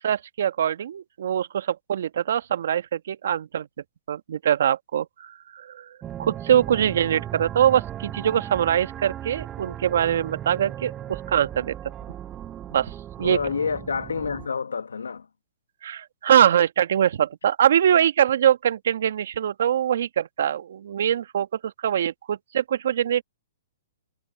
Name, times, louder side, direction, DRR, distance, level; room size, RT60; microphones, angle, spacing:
voice 1, 0.0-3.7 4.1-5.8 6.2-11.7 12.7-12.9 13.2-13.4 15.8-23.2, right 9 dB, 65° right, 1.3 m, -23 dB
sound 1, 6.0-14.5, right 11 dB, 20° right, 0.6 m, -37 dB
voice 2, 13.2-15.3, left 5 dB, 90° left, 1.5 m, -28 dB
hypercardioid pair, 135°, 0 cm